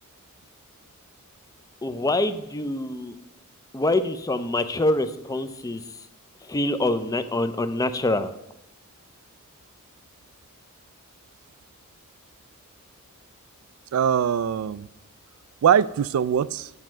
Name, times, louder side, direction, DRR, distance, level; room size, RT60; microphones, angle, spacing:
voice 1, 1.8-3.1 3.7-5.8 6.5-8.3, left 2 dB, 15° left, 10 dB, 0.5 m, -25 dB
voice 2, 13.9-14.9 15.6-16.7, right 8 dB, 80° right, 19 dB, 0.3 m, -22 dB
9.4 x 4.4 x 6.2 m, 0.84 s
head